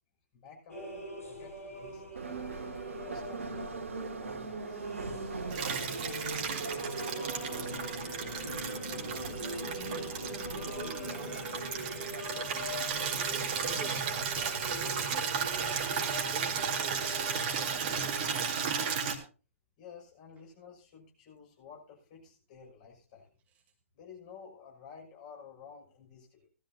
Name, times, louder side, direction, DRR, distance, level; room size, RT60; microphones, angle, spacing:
voice 1, 0.3-0.8 1.2-2.2 3.0-6.5 19.8-23.3 23.9-26.5, left 6 dB, 35° left, 0 dB, 6.1 m, -52 dB
sound 1, 0.7-18.3, left 1 dB, 90° left, 4.6 m, -43 dB
Subway metro underground, 2.2-14.7, right 4 dB, 60° right, 2.4 m, -41 dB
Water tap faucet / Liquid, 5.5-19.2, right 6 dB, 40° right, 2.0 m, -34 dB
voice 2, 8.9-11.5 12.3-12.8 13.3-15.5 16.3-19.0, right 5 dB, 20° right, 3 dB, 1.5 m, -49 dB
17.5 x 13.0 x 2.7 m, 0.35 s
figure-of-eight pair, 120°, 8 cm